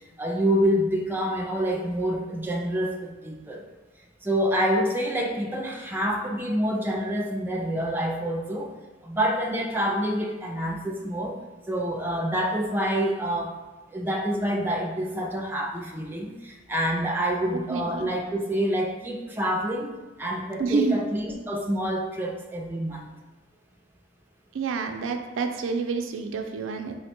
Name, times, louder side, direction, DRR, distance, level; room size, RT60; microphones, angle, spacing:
voice 1, 0.2-3.6 4.2-8.7 9.0-11.4 11.7-13.6 13.9-19.9 20.2-23.1, equal, 10° right, 0 dB, 0.4 m, -27 dB
voice 2, 17.7-18.1 20.6-21.0 24.5-27.0, right 4 dB, 85° right, 5 dB, 0.4 m, -28 dB
4.5 x 2.1 x 4.3 m, 1.2 s
head